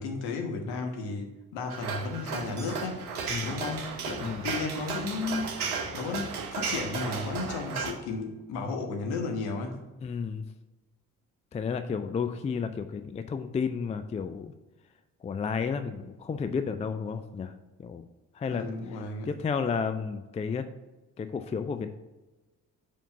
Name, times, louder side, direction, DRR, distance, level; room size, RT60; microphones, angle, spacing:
voice 1, 0.0-3.1 3.4-5.6 5.9-9.8 18.5-19.3, left 3 dB, 65° left, 4 dB, 1.2 m, -34 dB
sound 1, 1.7-7.9, right 5 dB, 85° right, 0.8 m, -34 dB
voice 2, 10.0-10.4 11.5-14.5 15.2-17.5 17.8-18.0 18.3-18.7 19.3-20.7 21.2-21.9, left 6 dB, 15° left, 9 dB, 0.4 m, -32 dB
5.2 x 5.0 x 5.5 m, 1.1 s
figure-of-eight pair, 45°, 43 cm